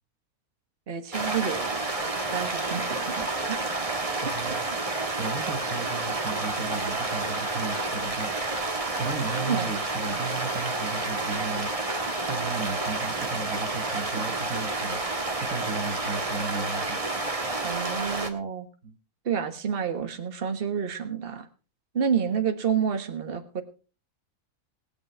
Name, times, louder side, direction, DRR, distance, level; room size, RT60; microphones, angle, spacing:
voice 1, 0.9-1.8 2.3-3.7 4.2-4.3 9.5-9.8 17.6-18.7 19.2-21.5 21.9-23.6, right 7 dB, 40° right, 8 dB, 1.5 m, -29 dB
sound 1, 1.1-18.3, right 2 dB, 25° right, 1.5 m, -30 dB
voice 2, 2.7-3.1 4.2-4.7 5.2-8.5 8.9-17.0 18.8-19.0, right 4 dB, 65° right, 9 dB, 1.8 m, -35 dB
19.0 x 8.8 x 4.4 m, 0.36 s
omnidirectional pair, 1.6 m